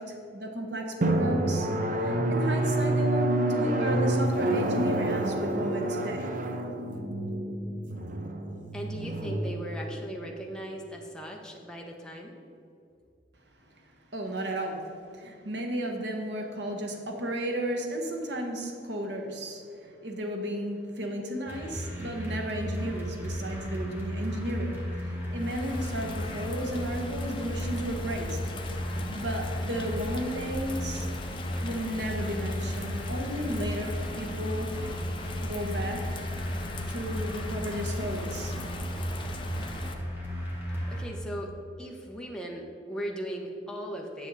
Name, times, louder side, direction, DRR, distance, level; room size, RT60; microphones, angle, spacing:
voice 1, 0.0-1.7 2.0-6.4 13.8-13.9 14.1-14.8 15.1-28.4 29.1-31.1 31.6-34.7 35.4-36.2 36.9-38.5, equal, 75° right, 2 dB, 1.1 m, -34 dB
Drum, 1.0-10.3, right 1 dB, 50° right, 0.6 m, -28 dB
voice 2, 8.7-12.3 40.9-41.5 41.8-44.3, right 1 dB, 5° left, -1 dB, 1.0 m, -38 dB
sound 1, 21.5-41.1, equal, 10° right, 1.8 m, -35 dB
Bird vocalization bird call bird song / Rain, 25.3-39.9, left 2 dB, 30° left, 0.6 m, -40 dB
9.8 x 6.8 x 4.1 m, 2.6 s
head